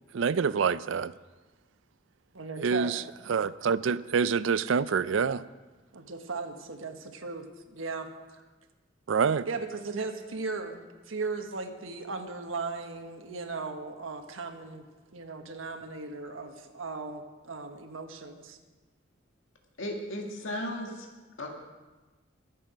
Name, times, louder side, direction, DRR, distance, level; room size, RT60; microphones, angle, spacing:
voice 1, 0.1-1.1 2.6-3.0 3.3-5.4 9.1-9.5, right 6 dB, 70° right, 0.4 m, -26 dB
voice 2, 2.3-2.9 5.9-8.4 9.5-14.8 15.1-18.6, right 3 dB, 90° right, 1.4 m, -37 dB
voice 3, 19.8-21.1 21.4-21.5, left 1 dB, 75° left, 1.9 m, -35 dB
22.5 x 7.7 x 5.0 m
head